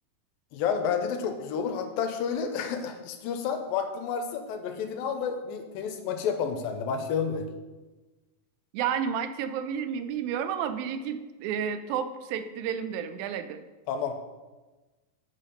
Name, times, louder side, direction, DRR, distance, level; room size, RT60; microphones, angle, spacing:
voice 1, 0.5-7.5 13.9-14.2, left 6 dB, 85° left, 6 dB, 2.4 m, -30 dB
voice 2, 8.7-13.6, right 8 dB, 85° right, 10 dB, 2.3 m, -31 dB
7.8 x 4.2 x 5.1 m, 1.2 s
omnidirectional pair, 4.1 m